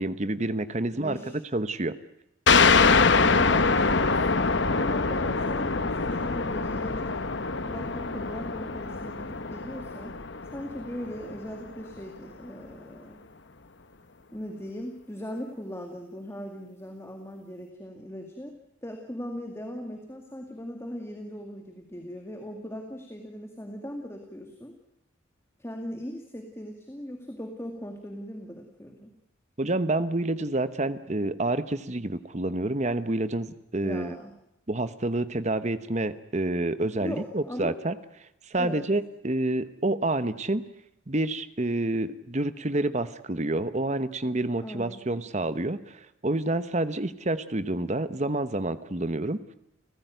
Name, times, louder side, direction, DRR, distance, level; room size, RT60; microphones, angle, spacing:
voice 1, 0.0-1.2 1.5-2.0 29.6-34.2 34.7-37.9 38.5-40.6 41.1-49.4, right 2 dB, 35° right, 13 dB, 1.0 m, -28 dB
voice 2, 0.9-1.4 2.9-7.2 7.7-10.2 10.5-13.2 14.3-18.6 18.8-24.7 25.6-29.1 33.8-34.3 36.9-37.8 38.6-38.9 44.6-45.2, equal, 15° left, 3 dB, 2.1 m, -39 dB
sound 1, 2.5-11.7, left 4 dB, 60° left, 1.1 m, -24 dB
29.5 x 15.5 x 9.2 m, 0.80 s
head